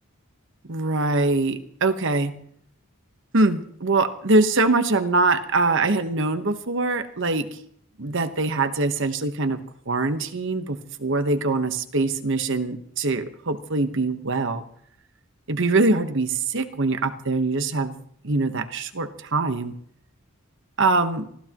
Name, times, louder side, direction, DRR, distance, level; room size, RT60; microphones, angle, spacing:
voice 1, 0.7-2.3 3.3-7.5 8.0-9.6 9.9-14.6 15.5-17.9 18.2-19.7 20.8-21.3, right 3 dB, 60° right, 9 dB, 1.2 m, -23 dB
25.5 x 15.5 x 3.0 m, 0.65 s
head